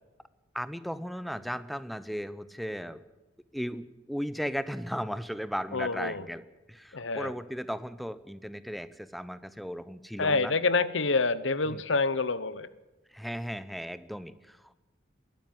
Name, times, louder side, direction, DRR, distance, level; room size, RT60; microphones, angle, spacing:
voice 1, 0.5-3.0 3.5-10.5 11.7-11.8 13.1-14.8, equal, ahead, 14 dB, 0.8 m, -36 dB
voice 2, 5.7-6.2 6.9-7.3 10.2-12.7, left 3 dB, 75° left, 16 dB, 1.0 m, -27 dB
22.0 x 12.5 x 9.5 m, 1.1 s
head